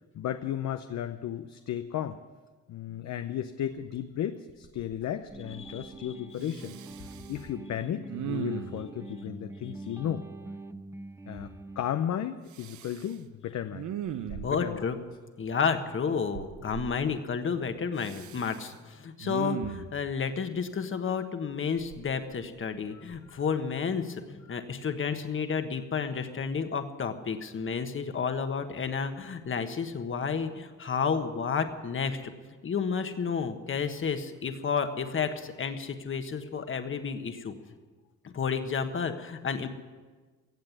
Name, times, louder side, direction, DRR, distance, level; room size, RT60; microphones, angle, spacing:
voice 1, 0.1-2.2 2.7-6.8 7.3-10.2 11.3-13.9 14.3-14.8 22.9-23.4 24.5-24.6, left 10 dB, 65° left, 9 dB, 0.7 m, -34 dB
Respiratory sounds, 4.0-4.1 4.5-5.0 5.3-6.0 6.4-7.4 8.1-8.9 12.5-13.1 13.7-14.8 16.3-16.9 18.0-18.7 19.2-20.0 21.8-22.7 23.1-23.3, right 10 dB, 70° right, 0.7 m, -39 dB
sound 1, 5.3-11.8, right 2 dB, 10° right, 0.7 m, -44 dB
voice 2, 5.6-6.1 14.4-15.0 15.4-32.2 32.6-37.5 38.2-39.7, left 6 dB, 40° left, 7 dB, 1.4 m, -31 dB
16.5 x 7.7 x 9.7 m, 1.4 s
cardioid pair, 90°, 30 cm